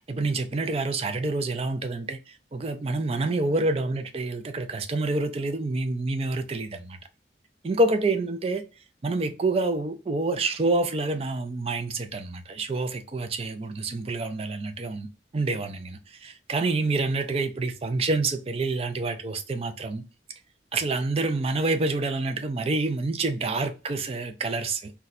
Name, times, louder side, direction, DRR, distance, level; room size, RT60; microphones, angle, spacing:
voice 1, 0.1-7.0 7.6-8.6 9.0-20.0 20.7-24.9, right 2 dB, 30° right, 0.4 m, -27 dB
4.1 x 2.2 x 2.4 m
head